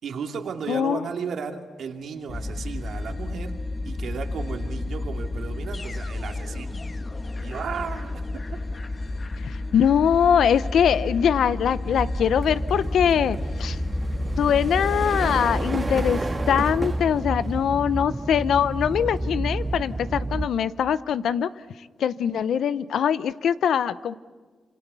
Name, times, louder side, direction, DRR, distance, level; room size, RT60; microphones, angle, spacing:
voice 1, 0.0-3.6 3.8-6.7 7.4-8.2, right 6 dB, 80° right, 4 dB, 2.6 m, -34 dB
voice 2, 0.7-1.0 9.4-13.8 14.4-16.2 16.5-21.5 22.0-24.1, left 8 dB, 85° left, 15 dB, 0.7 m, -22 dB
sound 1, 2.3-17.6, left 2 dB, 35° left, 1.4 m, -32 dB
sound 2, 3.2-3.4 3.8-20.5, right 3 dB, 30° right, 1.8 m, -38 dB
sound 3, 11.8-20.5, right 1 dB, 10° right, 1.4 m, -30 dB
26.5 x 26.5 x 6.9 m, 1.5 s
cardioid pair, 90°, 0 cm